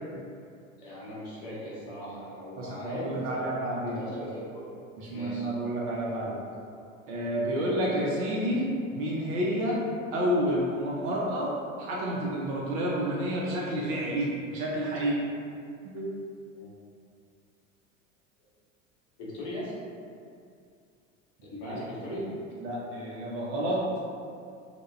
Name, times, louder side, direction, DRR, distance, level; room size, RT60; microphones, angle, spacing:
voice 1, 0.8-3.5 3.9-4.7 5.1-5.5 16.6-16.7 19.2-19.7 21.4-22.2, equal, 50° left, -7 dB, 0.9 m, -39 dB
voice 2, 2.6-4.0 5.0-6.4 7.1-9.8 10.1-11.5 11.8-15.2 15.9-16.1 21.7-21.8 22.1-22.2 22.5-23.8, equal, 35° right, -5 dB, 0.4 m, -30 dB
2.2 x 2.1 x 3.0 m, 2.4 s
figure-of-eight pair, 75°, 40 cm